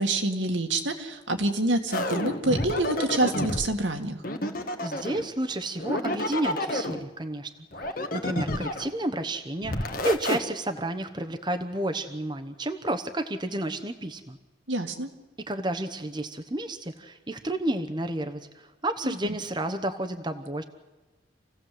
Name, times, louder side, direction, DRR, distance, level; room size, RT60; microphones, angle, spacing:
voice 1, 0.0-4.2 14.7-15.1 19.0-19.4, right 2 dB, 80° right, 4 dB, 2.1 m, -27 dB
sound 1, 1.9-3.7 4.2-5.3 5.8-7.0 7.7-8.9 9.6-10.4, left 1 dB, 45° left, 1.5 m, -29 dB
voice 2, 4.8-7.5 8.1-14.4 15.5-18.4 18.8-20.6, right 1 dB, 25° right, 7 dB, 1.0 m, -31 dB
27.5 x 16.5 x 7.8 m, 1.2 s
head